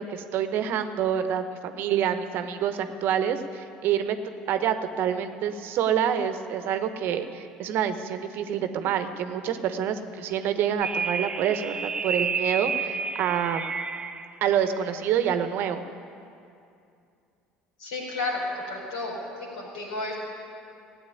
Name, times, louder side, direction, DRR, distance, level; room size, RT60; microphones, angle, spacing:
voice 1, 0.0-4.2 4.5-13.7 14.4-15.8, right 9 dB, 60° right, 9 dB, 1.0 m, -27 dB
sound 1, 10.8-14.3, right 5 dB, 25° right, 0.9 m, -30 dB
voice 2, 17.8-19.2 19.5-20.1, left 2 dB, 80° left, -3 dB, 4.7 m, -32 dB
16.0 x 8.8 x 9.4 m, 2.5 s
hypercardioid pair, 65°, 4 cm